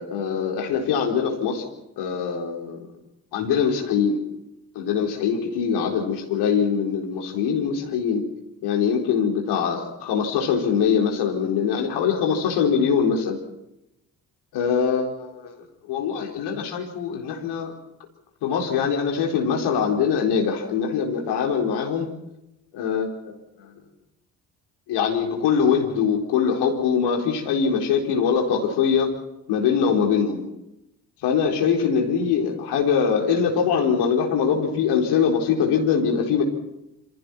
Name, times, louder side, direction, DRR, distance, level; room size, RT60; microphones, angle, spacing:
voice 1, 0.0-1.6 2.0-2.9 3.3-4.2 4.7-8.2 8.6-13.4 14.5-15.6 15.9-17.7 18.4-22.1 22.7-23.7 24.9-29.1 29.5-30.4 31.2-36.4, left 6 dB, 60° left, 1 dB, 4.4 m, -23 dB
28.0 x 27.0 x 4.5 m, 0.89 s
figure-of-eight pair, 40°, 44 cm